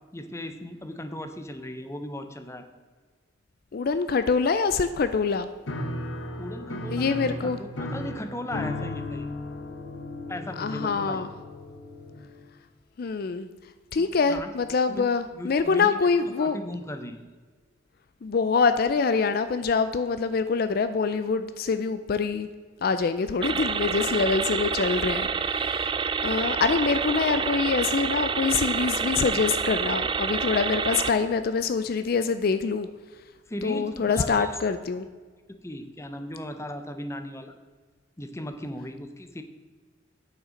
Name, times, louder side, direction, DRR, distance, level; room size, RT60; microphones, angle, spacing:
voice 1, 0.1-2.7 6.2-9.3 10.3-11.3 14.0-14.5 14.9-15.0 15.3-16.1 16.4-17.2 33.5-34.7 35.5-37.5 38.2-39.4, left 1 dB, 15° left, 8 dB, 0.7 m, -37 dB
voice 2, 3.7-5.5 6.9-7.6 10.6-11.3 13.0-13.5 13.9-16.6 18.2-22.5 22.8-25.9 26.2-32.9 33.6-35.1, left 5 dB, 50° left, 11 dB, 0.4 m, -25 dB
Piano, 5.7-12.4, left 1 dB, 80° left, 1.2 m, -35 dB
sound 1, 23.4-31.1, right 5 dB, 25° right, 0.4 m, -28 dB
8.9 x 6.7 x 5.0 m, 1.5 s
head